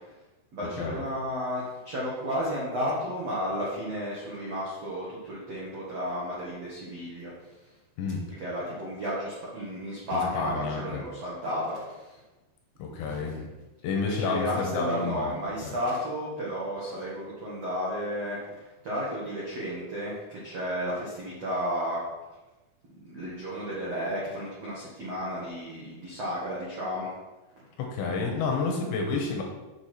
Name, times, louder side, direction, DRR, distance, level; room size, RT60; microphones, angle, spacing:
voice 1, 0.5-7.3 8.4-12.1 13.1-13.2 14.0-22.0 23.1-27.1, equal, 70° right, -7 dB, 1.5 m, -33 dB
voice 2, 10.1-11.0 12.8-13.4 13.8-15.3 15.6-15.7 27.8-29.4, left 4 dB, 75° left, 1 dB, 3.0 m, -30 dB
7.2 x 6.8 x 4.4 m, 1.1 s
omnidirectional pair, 5.7 m